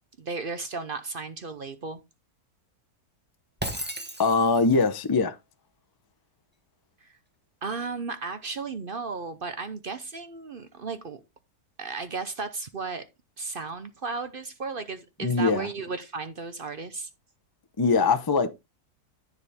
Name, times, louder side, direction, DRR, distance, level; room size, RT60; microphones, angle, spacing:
voice 1, 0.2-2.0 7.0-7.1 7.6-11.2 11.8-13.0 13.4-17.1, right 4 dB, 45° right, 0.8 m, -34 dB
Shatter, 3.6-4.8, right 1 dB, 5° right, 1.1 m, -35 dB
voice 2, 4.2-5.3 15.2-15.7 17.8-18.5, left 4 dB, 40° left, 0.3 m, -22 dB
9.6 x 6.8 x 3.5 m
omnidirectional pair, 1.6 m